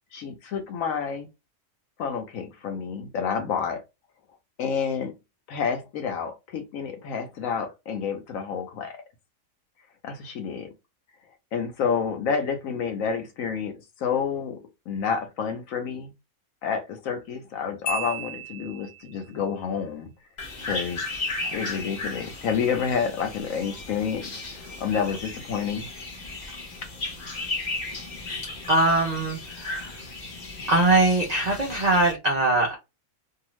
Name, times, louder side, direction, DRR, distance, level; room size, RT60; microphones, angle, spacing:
voice 1, 0.1-1.3 2.0-3.8 4.6-5.1 5.5-9.0 10.0-10.7 11.5-14.6 14.9-16.1 16.6-20.1 20.6-21.0 21.5-25.9, left 6 dB, 70° left, 1.0 m, -29 dB
Marimba xylophone, 17.9-19.3, right 2 dB, 85° left, 1.2 m, -34 dB
sound 1, 20.4-32.1, left 2 dB, 40° left, 0.7 m, -35 dB
voice 2, 28.7-30.0 30.7-32.8, right 2 dB, 60° right, 0.4 m, -22 dB
2.7 x 2.3 x 3.0 m
omnidirectional pair, 1.6 m